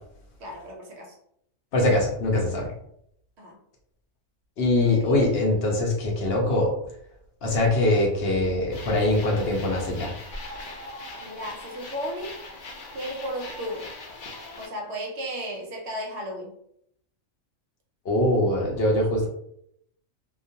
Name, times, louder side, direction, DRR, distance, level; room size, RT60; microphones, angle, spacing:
voice 1, 0.4-1.1 3.4-3.6 5.5-5.6 11.2-12.4 12.9-13.9 14.6-16.6, equal, 65° right, 0 dB, 0.8 m, -34 dB
voice 2, 1.7-2.7 4.6-6.7 7.4-10.1 18.0-19.3, left 1 dB, 55° left, 0 dB, 0.8 m, -23 dB
sound 1, 8.7-14.7, left 2 dB, 75° left, 0.4 m, -41 dB
2.3 x 2.2 x 2.7 m, 0.72 s
omnidirectional pair, 1.4 m